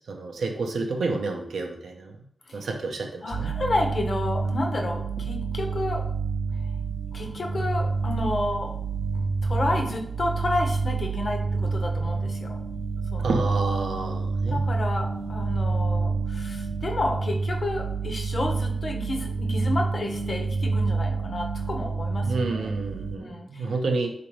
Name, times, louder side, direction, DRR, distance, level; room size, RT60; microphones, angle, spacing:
voice 1, 0.1-2.2 2.5-3.5 13.2-14.6 22.2-24.1, right 3 dB, 90° right, 3 dB, 0.5 m, -29 dB
voice 2, 3.2-6.0 7.1-8.7 9.1-12.6 13.1-13.3 14.5-22.8 23.2-23.7, left 2 dB, 40° left, 2 dB, 0.5 m, -31 dB
sound 1, 3.3-23.2, right 4 dB, 35° right, 0.3 m, -28 dB
3.9 x 2.5 x 3.0 m, 0.70 s
wide cardioid pair, 170°, 0 cm